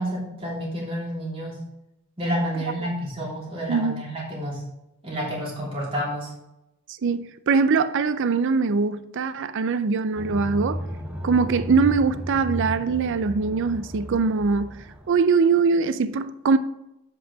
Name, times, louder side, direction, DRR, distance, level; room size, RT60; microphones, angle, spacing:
voice 1, 0.0-1.5 2.2-4.6 5.0-6.3, equal, 25° right, 3.0 m, -29 dB
voice 2, 3.7-4.1 7.0-10.8 11.2-16.6, right 4 dB, 55° right, 0.4 m, -22 dB
sound 1, 10.2-15.2, equal, 5° right, 0.9 m, -34 dB
7.9 x 5.6 x 5.9 m
head